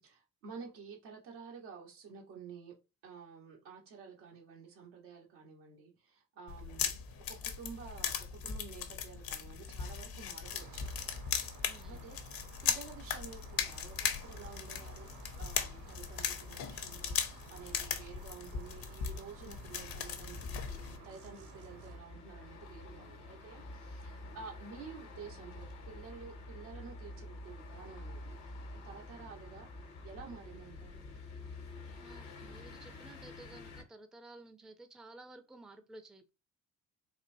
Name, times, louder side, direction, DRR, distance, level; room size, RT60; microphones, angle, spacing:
voice 1, 0.0-2.7 3.0-10.9 11.8-15.1 15.4-28.4 28.8-31.0, right 5 dB, 80° right, 1.2 m, -51 dB
sound 1, 6.5-21.0, left 7 dB, 55° left, 0.8 m, -38 dB
sound 2, 10.4-22.0, right 5 dB, 50° right, 0.9 m, -55 dB
voice 2, 11.7-12.0 32.0-36.3, right 2 dB, ahead, 0.5 m, -54 dB
sound 3, 16.6-33.8, left 2 dB, 85° left, 1.1 m, -49 dB
4.2 x 2.5 x 2.6 m
hypercardioid pair, 50°, 42 cm